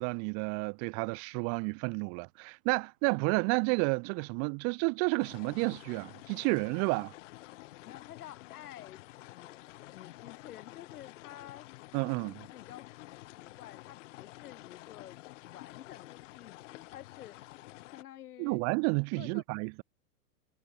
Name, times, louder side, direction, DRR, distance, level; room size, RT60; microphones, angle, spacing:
voice 1, 0.0-7.1 11.9-12.4 18.4-19.8, right 39 dB, 35° right, 1.6 m, -31 dB
sound 1, 5.2-18.0, left 18 dB, 50° left, 6.3 m, -50 dB
voice 2, 7.8-9.0 9.3-9.6 9.9-12.0 12.4-12.9 13.4-17.4 17.9-18.6 19.2-19.4, left 12 dB, 70° left, 5.1 m, -50 dB
hypercardioid pair, 150°, 47 cm